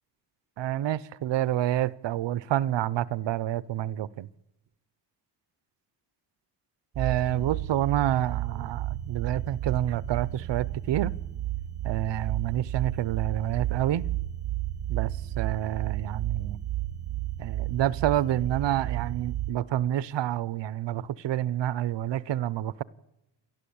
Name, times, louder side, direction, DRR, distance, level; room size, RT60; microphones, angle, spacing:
voice 1, 0.6-4.3 7.0-11.1 11.8-14.0 14.9-16.6 17.4-22.8, right 12 dB, 80° right, 0.8 m, -28 dB
sound 1, 6.9-19.5, right 14 dB, 40° right, 0.8 m, -32 dB
30.0 x 12.0 x 8.6 m
wide cardioid pair, 165°, 42 cm